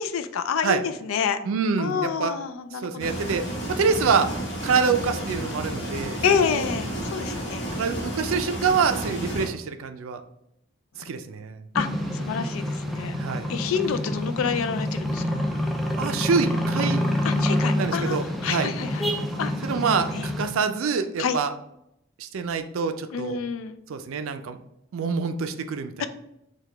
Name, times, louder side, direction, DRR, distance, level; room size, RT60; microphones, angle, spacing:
voice 1, 0.0-1.4 1.8-3.1 6.2-7.7 11.7-11.9 12.1-13.2 13.5-15.2 17.2-19.1 19.4-19.5 20.1-20.3 21.2-21.4 23.1-23.8 26.0-26.1, left 6 dB, 90° left, 10 dB, 0.4 m, -28 dB
voice 2, 1.4-2.3 2.7-4.3 4.6-6.6 7.7-10.2 11.0-11.7 13.2-13.5 15.9-17.0 17.8-18.7 19.6-21.5 22.2-23.4 23.9-24.6 24.9-26.1, right 5 dB, 90° right, 9 dB, 0.4 m, -26 dB
sound 1, 3.0-9.5, right 1 dB, 55° left, 1.1 m, -31 dB
sound 2, 11.7-20.5, left 1 dB, ahead, 0.3 m, -27 dB
4.7 x 2.3 x 3.3 m, 0.80 s
head